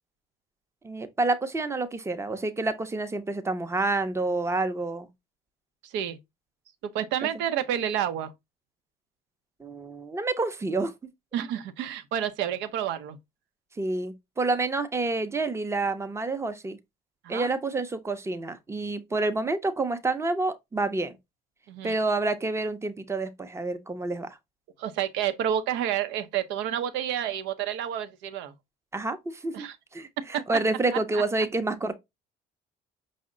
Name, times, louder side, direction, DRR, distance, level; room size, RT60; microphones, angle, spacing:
voice 1, 0.8-5.1 9.6-10.9 13.8-16.8 17.3-21.2 21.8-24.4 28.9-29.7 29.9-31.9, right 2 dB, 15° right, 0.6 m, -28 dB
voice 2, 5.8-6.2 6.8-8.3 11.3-13.2 17.2-17.5 21.7-22.0 24.8-28.5 29.5-29.8 31.1-31.2, right 10 dB, 75° right, 0.6 m, -29 dB
5.2 x 2.1 x 3.7 m
supercardioid pair, 85°, 19 cm